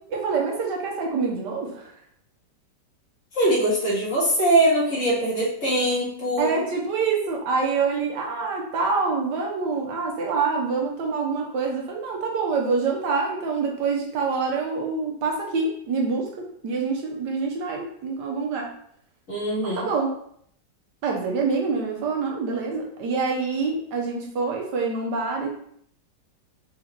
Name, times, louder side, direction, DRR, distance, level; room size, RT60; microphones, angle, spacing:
voice 1, 0.1-1.9 6.4-18.7 19.6-20.1 21.0-25.7, right 4 dB, 75° right, 0 dB, 1.5 m, -26 dB
voice 2, 3.3-6.6 19.3-19.9, right 1 dB, 45° left, -6 dB, 1.9 m, -22 dB
4.1 x 4.0 x 3.0 m, 0.66 s
omnidirectional pair, 1.9 m